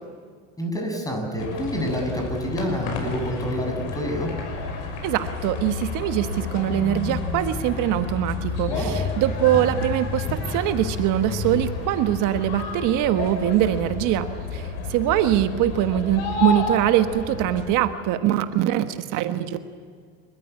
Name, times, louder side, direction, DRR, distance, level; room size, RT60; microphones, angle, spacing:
voice 1, 0.6-4.3 8.7-9.0, equal, 10° left, 3 dB, 7.4 m, -28 dB
sound 1, 1.4-17.6, left 3 dB, 85° left, 6.2 m, -30 dB
voice 2, 5.0-19.6, right 12 dB, 65° right, 9 dB, 1.4 m, -23 dB
28.5 x 14.5 x 9.5 m, 2.1 s
supercardioid pair, 100°, 34 cm